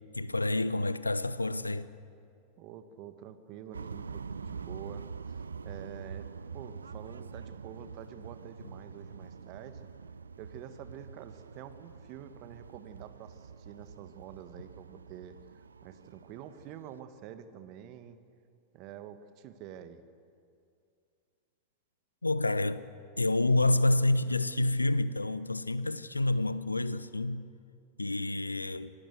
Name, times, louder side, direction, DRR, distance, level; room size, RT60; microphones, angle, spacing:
voice 1, 0.1-1.9 22.2-22.8 23.2-27.4 28.0-28.9, left 2 dB, 80° left, 0.8 m, -28 dB
voice 2, 2.6-9.9 10.4-18.2 18.7-20.0, right 10 dB, 40° right, 1.6 m, -48 dB
sound 1, 3.7-17.0, right 5 dB, 75° right, 0.6 m, -45 dB
26.5 x 18.5 x 8.0 m
figure-of-eight pair, 90°, 0 cm